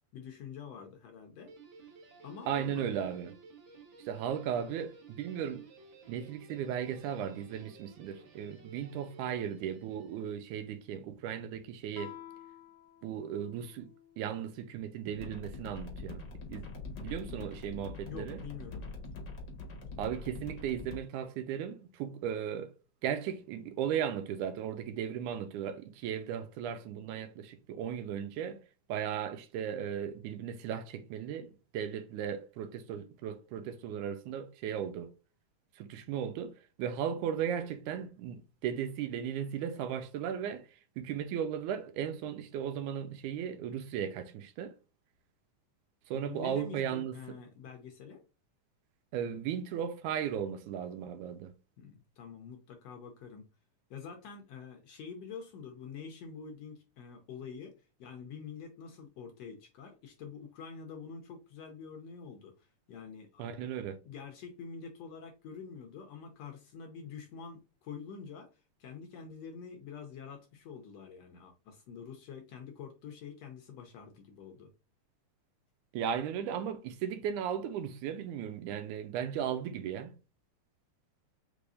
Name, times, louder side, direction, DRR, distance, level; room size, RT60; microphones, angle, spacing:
voice 1, 0.1-1.5 2.2-3.1 18.0-18.9 19.9-20.0 46.1-48.2 51.8-53.5 53.9-57.7 58.0-63.5 64.0-74.7, left 6 dB, 70° left, 1.7 m, -46 dB
Guitar, 1.4-10.8, right 4 dB, 60° right, 1.3 m, -55 dB
voice 2, 2.5-3.3 4.1-5.6 6.1-12.1 13.0-13.9 14.2-16.2 16.5-16.6 17.0-18.4 20.0-22.7 23.0-28.6 28.9-35.1 35.8-36.5 36.8-40.6 41.0-44.7 46.1-47.2 49.1-51.5 63.4-64.0 75.9-80.1, right 9 dB, 85° right, 2.1 m, -36 dB
Guitar 2, 11.9-14.4, left 12 dB, 85° left, 1.3 m, -51 dB
sound 1, 15.1-21.0, left 3 dB, 55° left, 1.4 m, -43 dB
5.2 x 3.4 x 2.5 m
omnidirectional pair, 3.6 m